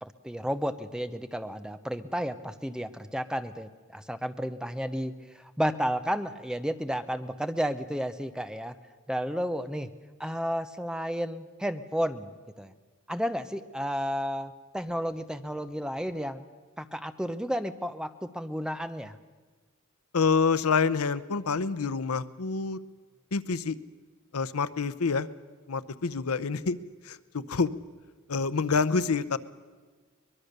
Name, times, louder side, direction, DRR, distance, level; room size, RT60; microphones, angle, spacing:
voice 1, 0.0-8.7 9.1-9.9 10.2-12.3 12.6-12.7 13.1-16.5 16.8-19.2, equal, 5° right, 10 dB, 0.8 m, -32 dB
voice 2, 20.1-22.8 23.3-23.8 24.3-25.3 25.7-26.8 27.0-27.7 28.3-29.4, left 5 dB, 85° left, 16 dB, 0.8 m, -27 dB
23.5 x 21.0 x 6.7 m, 1.4 s
head